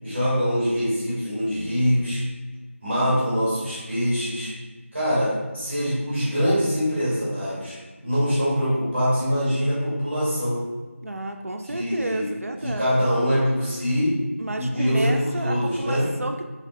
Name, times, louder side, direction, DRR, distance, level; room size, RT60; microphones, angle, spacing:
voice 1, 0.0-2.2 2.8-4.5 4.9-7.8 8.0-10.6 11.7-12.3 12.6-14.1 14.6-16.1, equal, 5° right, -10 dB, 1.2 m, -23 dB
voice 2, 11.0-12.9 14.4-16.5, right 1 dB, 85° right, 4 dB, 0.4 m, -31 dB
3.3 x 2.7 x 3.4 m, 1.3 s
figure-of-eight pair, 175°, 8 cm